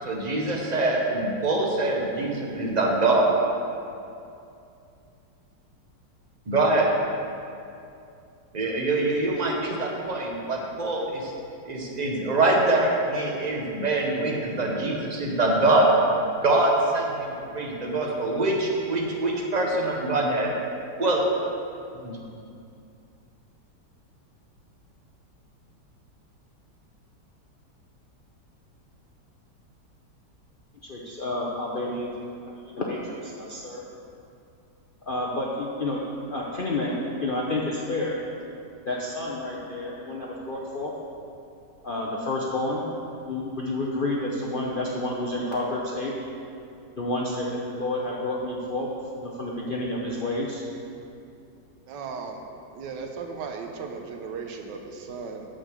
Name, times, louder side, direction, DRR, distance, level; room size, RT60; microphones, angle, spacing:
voice 1, 0.0-3.3 6.5-6.9 8.5-11.3 11.7-15.8 16.4-20.5 21.0-21.2 21.9-22.2, right 2 dB, 30° right, -2 dB, 1.0 m, -24 dB
voice 2, 30.8-32.1 32.5-33.8 35.1-36.0 36.3-38.2 38.9-40.9 41.8-42.9 43.3-46.1 47.0-48.9 49.2-50.6, left 2 dB, 50° left, -4 dB, 0.6 m, -29 dB
voice 3, 51.9-52.4 52.7-55.5, right 5 dB, 90° right, 4 dB, 1.4 m, -36 dB
6.7 x 6.3 x 6.2 m, 2.6 s
omnidirectional pair, 1.8 m